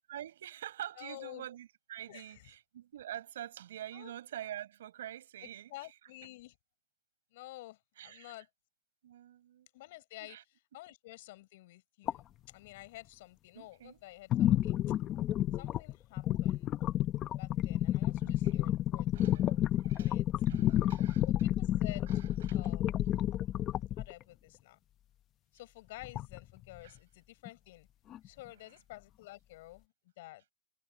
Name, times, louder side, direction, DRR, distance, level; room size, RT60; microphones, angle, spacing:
voice 1, 0.1-5.7 8.0-8.3 9.0-9.7 10.2-10.4 13.5-14.0 18.2-18.7 19.1-20.1 20.5-21.3 22.1-22.6 26.8-27.0 28.6-28.7, right 11 dB, 85° right, 5.3 m, -46 dB
voice 2, 1.0-1.5 2.1-2.4 3.9-4.1 5.4-6.5 7.3-8.5 9.7-10.4 10.7-15.0 15.5-16.7 17.3-19.1 20.0-20.3 21.2-22.1 22.5-23.0 24.0-24.8 25.5-27.9 28.2-30.5, left 18 dB, 65° left, 6.2 m, -51 dB
sound 1, 12.1-12.2 14.3-24.1 26.0-26.6 27.5-27.6 28.1-28.3, left 13 dB, 35° left, 0.9 m, -30 dB
supercardioid pair, 140°, 0 cm